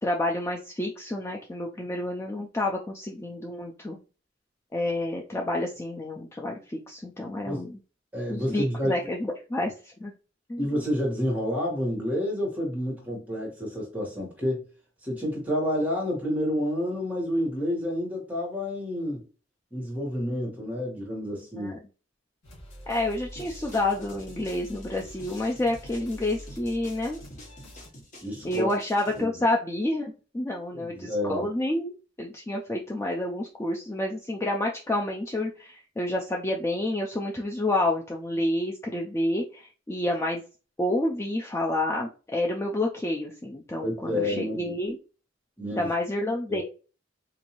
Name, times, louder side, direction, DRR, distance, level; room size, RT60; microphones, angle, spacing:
voice 1, 0.0-4.0 4.7-7.7 8.3-10.1 10.5-10.6 21.6-21.8 22.9-27.2 28.4-40.4 40.8-45.0 45.8-46.6, left 1 dB, 15° left, 0.4 m, -29 dB
voice 2, 8.1-9.0 10.6-14.7 15.0-19.2 19.7-21.8 28.2-28.7 29.1-29.3 30.7-31.5 43.8-44.8 45.6-45.9 46.5-46.6, equal, 10° right, 1.3 m, -29 dB
sound 1, 22.4-27.9, equal, 75° left, 1.9 m, -46 dB
sound 2, 23.4-29.2, left 1 dB, 40° left, 1.1 m, -49 dB
3.9 x 2.6 x 2.9 m
head